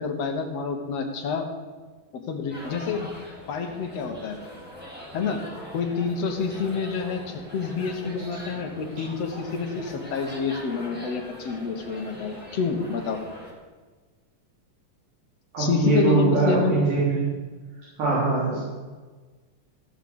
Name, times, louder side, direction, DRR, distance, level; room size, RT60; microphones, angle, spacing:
voice 1, 0.0-1.5 2.3-3.1 3.5-4.4 5.1-5.4 5.7-13.2 15.6-16.7, left 5 dB, 60° left, 4 dB, 2.1 m, -28 dB
sound 1, 2.5-13.5, equal, 5° right, 2.6 m, -42 dB
voice 2, 15.5-17.3 18.0-18.6, right 3 dB, 70° right, -11 dB, 5.3 m, -22 dB
15.5 x 6.0 x 6.8 m, 1.4 s
omnidirectional pair, 3.8 m